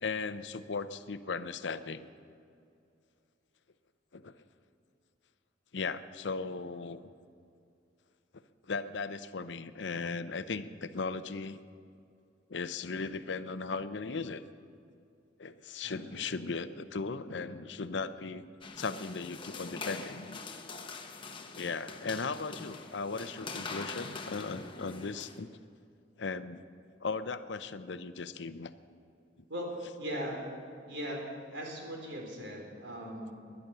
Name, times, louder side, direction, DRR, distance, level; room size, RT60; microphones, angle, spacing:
voice 1, 0.0-2.1 4.1-4.3 5.7-7.0 8.7-11.6 12.5-14.4 15.4-18.4 18.8-20.4 21.5-25.5 26.2-26.6 27.0-28.7, left 4 dB, 70° left, 12 dB, 0.7 m, -37 dB
voice 2, 15.8-16.6 17.2-17.6 29.5-29.7 30.0-30.5 30.9-33.3, equal, 90° right, 0 dB, 3.8 m, -40 dB
sound 1, 18.6-25.4, left 4 dB, 30° left, 1.0 m, -43 dB
19.0 x 11.0 x 6.8 m, 2.5 s
head